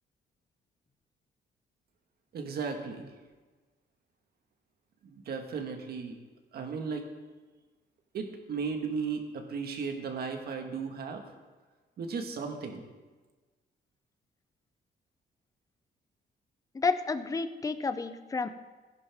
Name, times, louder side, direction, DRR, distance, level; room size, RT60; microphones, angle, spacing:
voice 1, 2.3-3.1 5.1-6.1 6.5-7.1 8.1-11.2 12.0-12.8, right 5 dB, 60° right, 4 dB, 1.6 m, -35 dB
voice 2, 16.7-18.6, left 4 dB, 20° left, 11 dB, 0.5 m, -30 dB
16.0 x 10.5 x 3.6 m, 1.3 s
cardioid pair, 125°, 18 cm